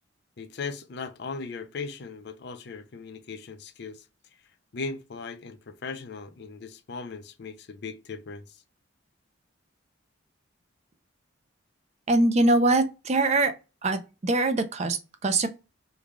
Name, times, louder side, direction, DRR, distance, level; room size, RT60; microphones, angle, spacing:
voice 1, 0.4-4.1 4.3-8.6, left 4 dB, 50° left, 0.4 m, -38 dB
voice 2, 12.1-13.5 13.8-15.5, right 2 dB, 30° right, 0.4 m, -23 dB
3.2 x 2.2 x 3.6 m
head